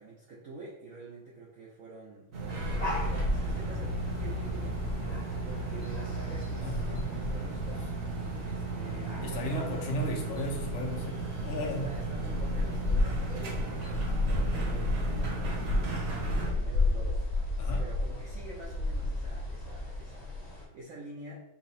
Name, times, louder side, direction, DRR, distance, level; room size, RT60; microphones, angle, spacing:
voice 1, 0.0-4.8 5.4-7.9 8.4-9.4 11.6-15.8 16.2-21.4, right 2 dB, 75° right, -3 dB, 0.7 m, -48 dB
sound 1, 2.3-16.5, right 4 dB, 55° right, 1.0 m, -36 dB
sound 2, 2.5-20.6, left 2 dB, 35° left, 0.7 m, -33 dB
voice 2, 6.6-7.1 9.2-11.9 17.6-17.8, equal, 75° left, 1 dB, 1.6 m, -35 dB
5.7 x 2.0 x 4.1 m, 0.91 s
omnidirectional pair, 2.2 m